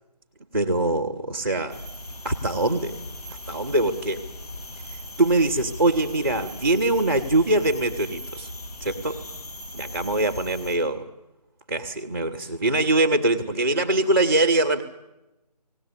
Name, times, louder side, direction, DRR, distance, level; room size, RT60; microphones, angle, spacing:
voice 1, 0.5-1.8 2.2-3.0 3.5-4.2 4.9-8.5 8.8-9.2 9.7-11.0 11.7-14.8, right 2 dB, 5° right, -8 dB, 0.8 m, -23 dB
sound 1, 1.7-10.8, left 1 dB, 65° left, 6.4 m, -39 dB
18.5 x 18.5 x 9.9 m, 0.98 s
figure-of-eight pair, 160°, 21 cm